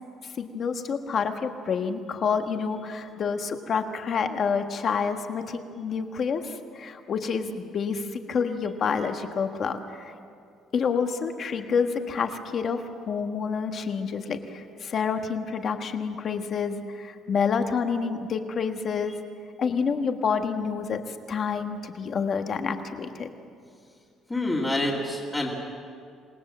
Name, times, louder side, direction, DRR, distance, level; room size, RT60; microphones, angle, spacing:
voice 1, 0.4-10.1 10.7-19.2 19.6-21.0 21.3-23.3, left 6 dB, 35° left, 6 dB, 1.5 m, -28 dB
voice 2, 24.3-25.5, left 1 dB, 10° left, -5 dB, 2.5 m, -27 dB
27.5 x 20.0 x 7.5 m, 2.4 s
cardioid pair, 180°, 0 cm